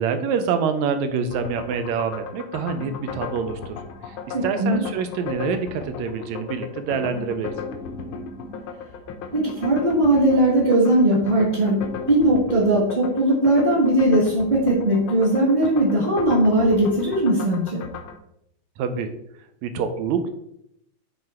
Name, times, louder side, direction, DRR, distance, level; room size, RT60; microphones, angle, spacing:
voice 1, 0.0-3.8 4.1-7.5 18.8-19.1 19.6-20.3, right 6 dB, 80° right, 9 dB, 2.0 m, -26 dB
sound 1, 1.3-18.2, left 5 dB, 85° left, 1.1 m, -36 dB
voice 2, 4.3-4.8 9.3-17.8, right 1 dB, 20° right, -6 dB, 1.2 m, -19 dB
7.7 x 4.0 x 4.3 m, 0.76 s
omnidirectional pair, 3.3 m